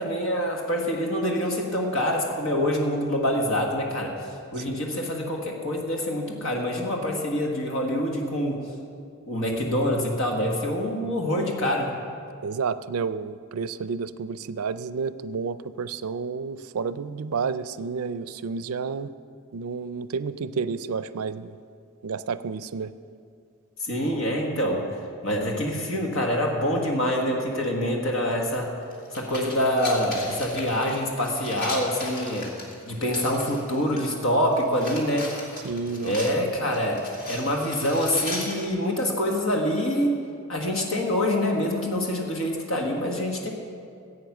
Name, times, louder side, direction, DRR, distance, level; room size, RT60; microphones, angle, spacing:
voice 1, 0.0-4.1 4.5-8.6 9.3-11.9 23.8-24.9 25.2-28.7 29.1-32.5 32.9-35.3 36.0-40.2 40.5-43.5, equal, 65° left, 0 dB, 1.5 m, -26 dB
voice 2, 12.4-19.1 19.5-21.5 22.0-22.9 35.6-36.2, right 5 dB, 85° right, 14 dB, 0.4 m, -30 dB
sound 1, 28.5-28.6 28.9-34.1 34.4-38.7, left 2 dB, 45° left, 2.3 m, -37 dB
15.0 x 8.5 x 6.0 m, 2.3 s
head